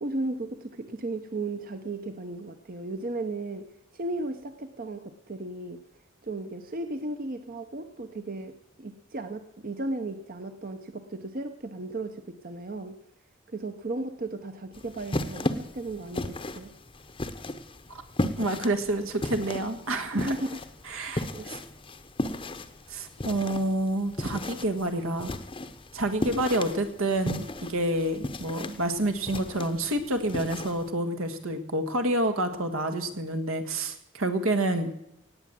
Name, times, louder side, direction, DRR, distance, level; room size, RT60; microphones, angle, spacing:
voice 1, 0.0-3.6 3.9-5.8 6.2-13.0 13.5-16.7 20.1-20.6 20.8-21.0 21.3-21.5, right 2 dB, 40° right, 8 dB, 0.8 m, -35 dB
sound 1, 14.7-30.9, left 1 dB, 25° left, 0.8 m, -36 dB
voice 2, 18.4-20.3 20.9-21.6 22.9-25.4 25.9-34.9, right 1 dB, 80° right, 7 dB, 1.7 m, -28 dB
18.0 x 8.2 x 7.6 m, 0.80 s
head